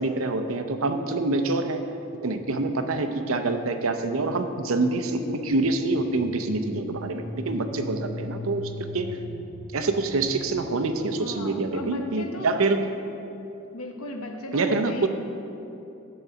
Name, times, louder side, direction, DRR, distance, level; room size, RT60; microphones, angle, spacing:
voice 1, 0.0-1.8 2.2-9.2 9.7-12.9 14.5-15.1, right 3 dB, 75° right, 7 dB, 0.7 m, -26 dB
sound 1, 5.9-10.7, left 2 dB, ahead, 0.7 m, -39 dB
voice 2, 11.2-12.5 13.7-15.1, left 2 dB, 85° left, 5 dB, 0.9 m, -36 dB
11.0 x 4.0 x 6.8 m, 2.9 s
head